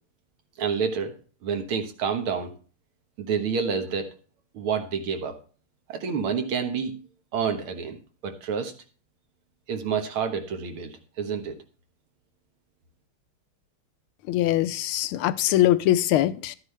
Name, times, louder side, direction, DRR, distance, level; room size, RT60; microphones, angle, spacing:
voice 1, 0.6-1.1 1.4-2.5 3.2-4.1 4.5-5.3 5.9-6.9 7.3-8.0 8.2-8.7 9.7-11.6, right 6 dB, 90° right, 2.2 m, -28 dB
voice 2, 14.3-16.6, left 13 dB, 90° left, 1.5 m, -22 dB
11.5 x 9.6 x 3.3 m
omnidirectional pair, 2.3 m